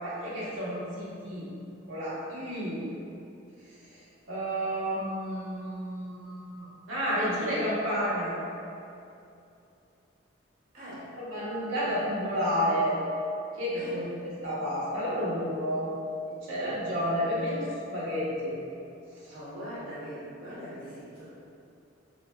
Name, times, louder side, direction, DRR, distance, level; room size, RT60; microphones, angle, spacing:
voice 1, 0.0-1.5 1.9-2.8 4.3-8.4 11.1-13.0 13.6-15.9 16.5-18.5, equal, 80° right, -9 dB, 0.8 m, -31 dB
voice 2, 10.7-11.1 13.7-14.0 19.3-21.3, equal, 45° right, -10 dB, 0.7 m, -41 dB
3.9 x 2.0 x 2.2 m, 2.7 s
head